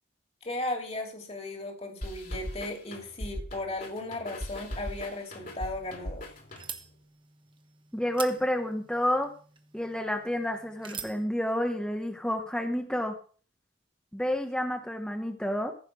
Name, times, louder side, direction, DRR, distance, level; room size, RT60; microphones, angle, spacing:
voice 1, 0.4-6.3, left 2 dB, 35° left, 3 dB, 2.5 m, -36 dB
sound 1, 2.0-7.0, equal, 50° left, 2.8 m, -40 dB
sound 2, 5.4-11.3, right 7 dB, 25° right, 1.2 m, -46 dB
voice 2, 7.9-9.3 9.7-13.2 14.1-15.7, equal, 5° left, 4 dB, 1.0 m, -29 dB
15.0 x 5.8 x 6.2 m, 0.40 s
head